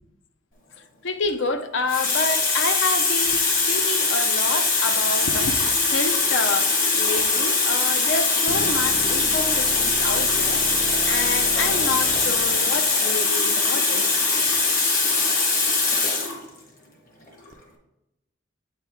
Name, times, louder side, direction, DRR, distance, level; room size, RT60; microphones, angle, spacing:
voice 1, 1.0-10.6 11.1-14.1, left 3 dB, 65° left, 0.5 m, -28 dB
Water tap faucet, 1.1-1.3 1.9-16.4 17.3-17.5, left 4 dB, 40° left, 1.0 m, -22 dB
sound 1, 8.5-13.5 17.5-17.6, right 3 dB, 45° right, 0.4 m, -36 dB
7.9 x 4.4 x 3.5 m
head